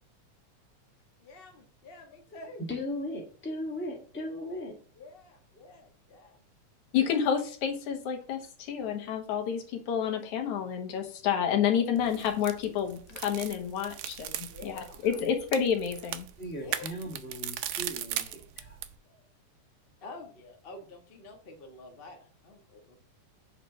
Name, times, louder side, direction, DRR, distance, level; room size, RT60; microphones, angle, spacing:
voice 1, 1.2-2.6 4.9-6.4 14.5-15.0 16.6-16.9 20.0-23.0, left 2 dB, 35° left, 2 dB, 0.9 m, -48 dB
voice 2, 2.7-4.7 16.4-18.8 19.1-19.2, left 1 dB, 5° left, 0 dB, 1.3 m, -37 dB
voice 3, 6.9-16.3, left 8 dB, 80° left, 4 dB, 2.5 m, -29 dB
sound 1, 12.0-19.0, right 12 dB, 85° right, 2.1 m, -39 dB
7.5 x 4.2 x 5.9 m, 0.43 s
omnidirectional pair, 3.4 m